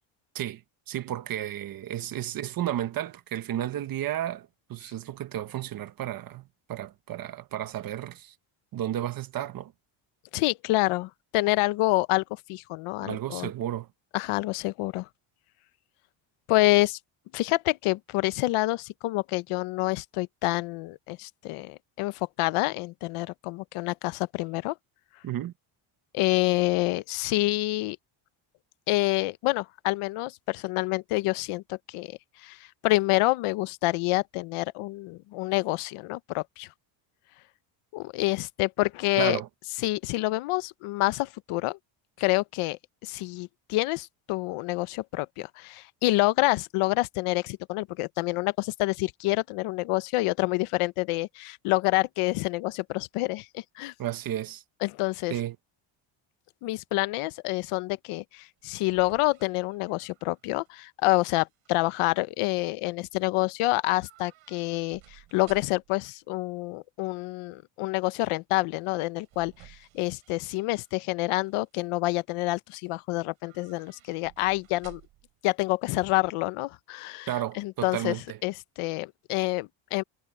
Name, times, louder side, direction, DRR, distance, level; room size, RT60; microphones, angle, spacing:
voice 1, 0.3-8.3 8.7-9.7 13.0-13.9 25.2-25.5 39.2-39.5 54.0-54.6 55.3-55.6 77.3-78.4, right 12 dB, 45° right, 1.1 m, -33 dB
voice 2, 10.3-13.5 14.1-15.1 16.5-17.0 17.3-24.8 26.1-28.0 28.9-36.7 37.9-39.4 39.8-41.8 42.2-53.9 54.8-55.3 56.6-75.0 75.4-77.3 77.5-78.2 78.4-80.0, left 20 dB, 80° left, 0.9 m, -27 dB
sound 1, 58.4-60.8 61.1-61.7 63.9-66.0 68.8-70.9 71.3-71.8 73.3-75.4 75.6-75.7, right 16 dB, 70° right, 5.1 m, -56 dB
cardioid pair, 170°, 50 cm